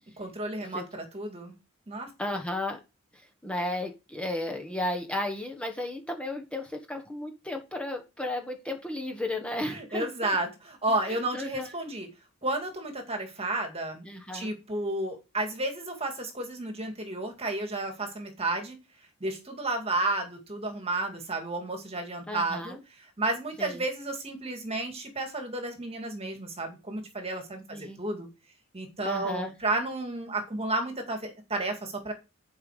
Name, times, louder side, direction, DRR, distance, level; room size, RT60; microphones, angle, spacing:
voice 1, 0.2-1.5 1.9-2.1 9.7-12.1 12.4-14.0 14.3-18.8 19.2-28.3 28.7-32.1, right 2 dB, 30° right, 4 dB, 2.4 m, -32 dB
voice 2, 2.2-2.8 3.1-10.3 11.1-11.7 14.0-14.5 22.3-22.8 23.6-23.8 27.7-28.0 29.0-29.5, left 1 dB, 5° left, 3 dB, 1.3 m, -34 dB
11.0 x 5.4 x 5.0 m, 0.27 s
head